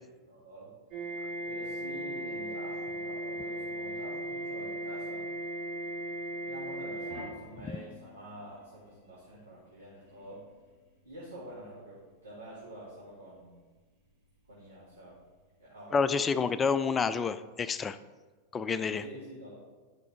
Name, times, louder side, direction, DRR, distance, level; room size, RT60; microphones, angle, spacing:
voice 1, 0.3-0.7 1.5-5.3 6.4-10.4 11.0-13.6 14.5-15.2 15.6-16.4 19.0-19.5, right 1 dB, 80° right, -8 dB, 2.3 m, -47 dB
sound 1, 0.9-8.3 9.3-9.5 10.0-10.3 12.4-12.5, right 1 dB, 35° right, 2.4 m, -37 dB
voice 2, 15.9-18.0 18.5-19.0, left 5 dB, 20° left, 13 dB, 0.3 m, -28 dB
10.5 x 6.1 x 3.4 m, 1.3 s
figure-of-eight pair, 90°, 0 cm